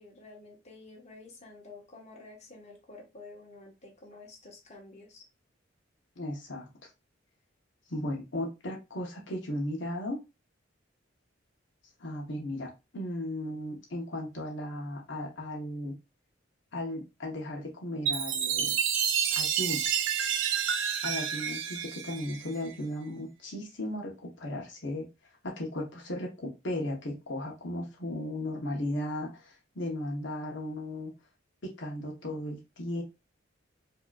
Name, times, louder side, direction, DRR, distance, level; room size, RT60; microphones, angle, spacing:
voice 1, 0.0-5.3, left 3 dB, 35° left, 0 dB, 1.2 m, -50 dB
voice 2, 6.2-6.9 7.9-10.2 12.0-15.9 16.7-18.7 19.3-19.9 21.0-24.1 24.4-25.0 25.6-31.1 31.8-33.0, left 1 dB, 70° left, -1 dB, 1.0 m, -36 dB
Chime, 18.1-22.7, right 8 dB, 75° right, 0.6 m, -29 dB
4.8 x 2.9 x 2.3 m, 0.26 s
head